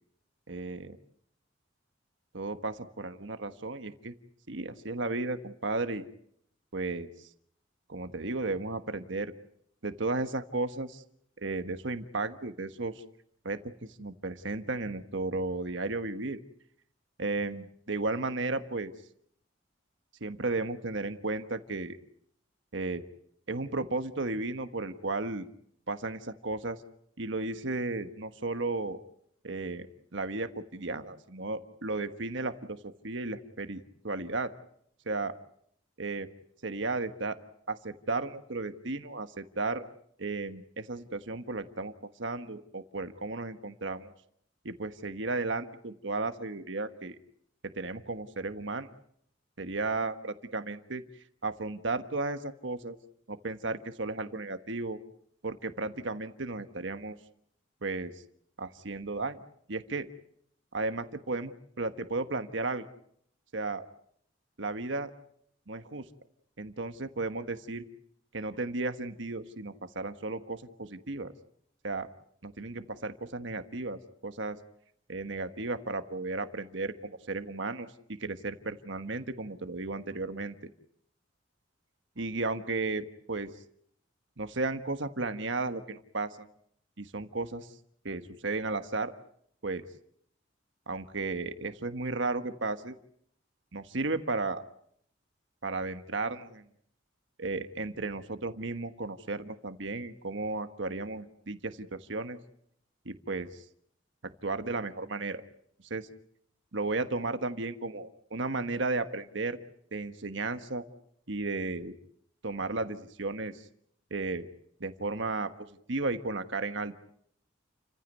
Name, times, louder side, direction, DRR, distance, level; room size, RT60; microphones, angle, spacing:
voice 1, 0.5-1.0 2.3-4.1 4.5-6.0 6.7-7.1 7.9-9.3 9.8-11.0 11.4-13.0 13.4-16.4 17.2-18.9 20.2-22.0 22.7-23.0 23.5-25.5 25.9-26.8 27.2-29.0 29.4-29.9 30.1-32.8 33.0-34.5 35.1-35.3 36.0-36.3 36.6-37.4 37.7-39.8 40.2-41.9 42.2-44.1 44.6-47.1 47.6-48.9 49.6-51.0 51.4-53.0 53.3-55.0 55.4-57.2 57.8-58.1 58.6-59.4 59.7-60.1 60.7-61.5 61.8-62.9 63.5-63.9 64.6-65.1 65.7-66.0 66.6-67.8 68.3-71.3 71.8-72.1 72.4-74.6 75.1-77.9 78.2-80.5 82.2-83.5 84.4-86.5 87.0-87.7 88.0-89.1 89.6-89.8 90.9-92.9 93.7-94.6 95.6-96.6 97.4-102.4 103.0-103.6 104.4-105.4 105.9-106.1 106.7-109.6 109.9-110.8 111.3-111.9 112.4-113.6 114.1-114.5 114.8-115.5 115.9-116.9, right 3 dB, 65° right, 9 dB, 1.4 m, -34 dB
30.0 x 15.5 x 9.3 m, 0.70 s
head